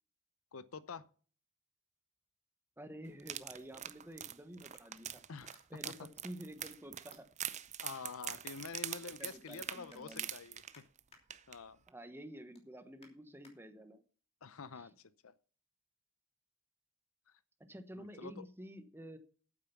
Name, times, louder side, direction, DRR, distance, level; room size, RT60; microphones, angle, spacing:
voice 1, 0.5-1.0 5.3-5.5 5.8-5.9 7.8-10.8 11.5-11.8 14.4-15.3 17.3-17.4 18.0-18.5, left 5 dB, 70° left, 0.7 m, -47 dB
sound 1, 1.9-6.0 6.6-7.2 7.5-8.8 9.2-9.6 9.9-11.2 11.6-11.9 12.2-13.5 14.1-14.2, left 3 dB, 30° left, 3.1 m, -66 dB
voice 2, 2.8-5.2 5.7-7.2 9.0-10.3 11.9-14.0 14.8-14.9 17.7-19.2, right 1 dB, 10° right, 1.1 m, -50 dB
sound 2, 3.2-11.0 11.3-11.6 11.9-12.0, right 10 dB, 30° right, 0.6 m, -44 dB
8.8 x 8.6 x 5.8 m
head